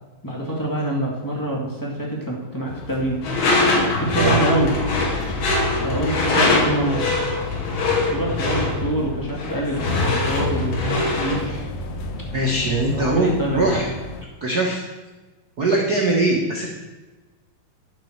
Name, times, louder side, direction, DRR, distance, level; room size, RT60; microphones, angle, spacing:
voice 1, 0.2-3.2 4.0-4.7 5.8-7.2 8.1-11.5 12.8-13.9, right 1 dB, 10° left, -2 dB, 1.3 m, -25 dB
sound 1, 2.7-14.3, left 2 dB, 70° left, 1.6 m, -33 dB
Door / Screech, 3.2-11.5, left 3 dB, 85° left, 4.2 m, -22 dB
voice 2, 12.3-13.9 14.4-14.8 15.6-16.7, right 2 dB, 80° right, -2 dB, 0.8 m, -21 dB
11.0 x 7.7 x 6.6 m, 1.2 s
omnidirectional pair, 4.2 m